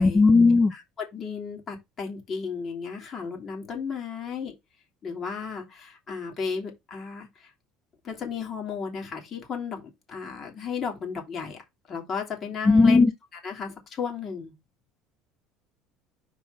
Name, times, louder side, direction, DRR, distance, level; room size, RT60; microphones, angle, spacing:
voice 1, 0.0-0.7 12.7-13.1, left 3 dB, 25° left, 0.6 m, -16 dB
voice 2, 0.7-4.5 5.0-7.5 8.0-11.6 11.9-13.0 13.3-14.5, left 6 dB, 45° left, 2.9 m, -34 dB
4.8 x 3.8 x 5.2 m
hypercardioid pair, 80°, 0 cm